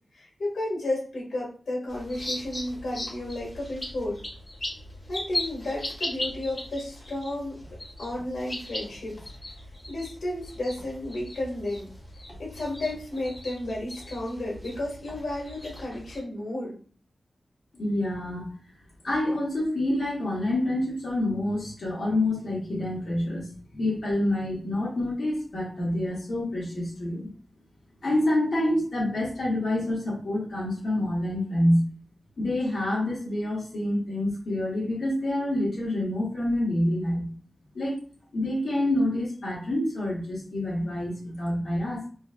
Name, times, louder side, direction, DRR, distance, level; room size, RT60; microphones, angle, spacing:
voice 1, 0.1-4.2 5.1-7.6 8.0-9.2 9.9-11.9 12.4-16.7, left 1 dB, 90° left, -3 dB, 1.5 m, -32 dB
sound 1, 1.9-16.2, left 1 dB, 25° left, 1.8 m, -38 dB
voice 2, 17.7-18.5 19.0-27.3 28.0-31.8 32.4-37.3 37.7-38.0 38.3-42.0, left 1 dB, 65° left, -6 dB, 1.6 m, -27 dB
4.3 x 2.8 x 2.3 m, 0.43 s
wide cardioid pair, 115°, 0 cm